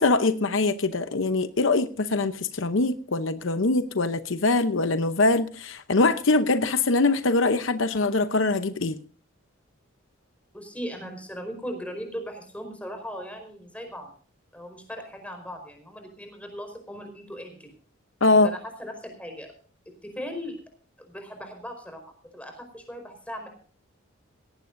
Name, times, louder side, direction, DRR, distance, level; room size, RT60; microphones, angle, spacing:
voice 1, 0.0-9.0 18.2-18.5, left 3 dB, 75° left, 0.8 m, -23 dB
voice 2, 10.5-14.1 14.5-17.7 18.4-19.5 20.0-20.6 21.0-23.5, equal, 5° left, 4.7 m, -38 dB
18.5 x 17.5 x 2.6 m
head